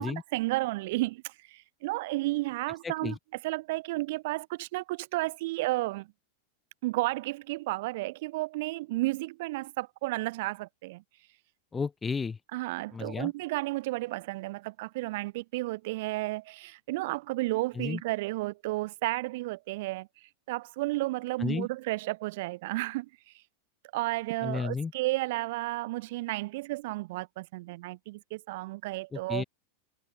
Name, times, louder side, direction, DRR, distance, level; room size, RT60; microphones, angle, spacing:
voice 1, 0.0-3.2 3.4-6.1 6.8-11.0 12.5-23.3 23.9-29.4, right 20 dB, 50° right, 1.5 m, -32 dB
voice 2, 2.8-3.2 11.7-12.4 12.9-13.3 17.8-18.0 21.4-21.7 24.4-24.9 29.1-29.4, left 5 dB, 15° left, 2.4 m, -32 dB
figure-of-eight pair, 90°, 0 cm